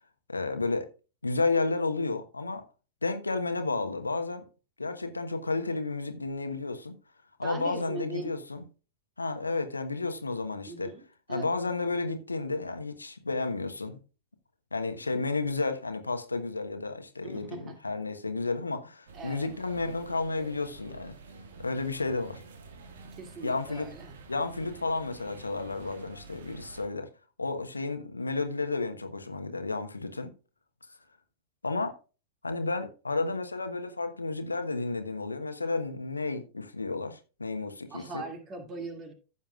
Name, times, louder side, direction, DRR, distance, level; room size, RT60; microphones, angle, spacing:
voice 1, 0.3-0.9 1.2-2.6 3.0-4.4 4.8-7.0 7.4-8.6 9.2-10.9 11.3-14.0 14.7-21.1 21.6-22.4 23.4-23.9 24.3-27.1 27.4-30.3 31.6-32.0 32.4-38.2, left 3 dB, 80° left, 1.2 m, -32 dB
voice 2, 7.4-8.3 10.7-11.0 11.3-11.5 17.2-17.8 19.1-19.5 23.1-24.2 37.9-39.1, right 3 dB, 30° right, 2.3 m, -40 dB
sound 1, 19.1-26.9, right 4 dB, 60° right, 1.8 m, -49 dB
15.0 x 7.1 x 2.4 m
figure-of-eight pair, 90°, 0 cm